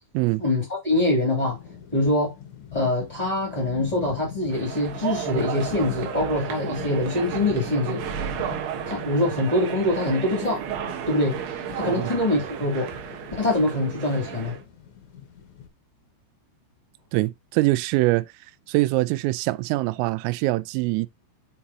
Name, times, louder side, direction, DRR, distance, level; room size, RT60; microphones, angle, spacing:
voice 1, 0.4-1.6 1.9-2.3 2.7-8.0 8.8-10.6 11.1-11.4 11.7-12.9 13.4-14.5, left 1 dB, 15° left, 1.2 m, -24 dB
sound 1, 1.4-15.7, left 8 dB, 80° left, 1.6 m, -41 dB
sound 2, 4.5-14.6, right 9 dB, 70° right, 2.7 m, -33 dB
voice 2, 17.1-18.3 18.7-21.1, right 20 dB, 85° right, 3.2 m, -23 dB
7.3 x 5.4 x 2.8 m
omnidirectional pair, 5.9 m